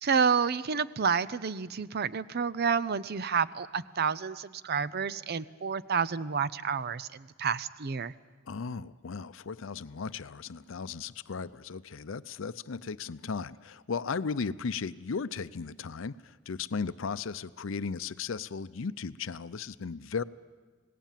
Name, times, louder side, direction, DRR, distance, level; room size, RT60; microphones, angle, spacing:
voice 1, 0.0-8.1, right 6 dB, 55° right, 17 dB, 0.6 m, -29 dB
voice 2, 8.5-20.2, left 5 dB, 75° left, 15 dB, 0.6 m, -36 dB
27.0 x 18.5 x 7.5 m, 1.4 s
head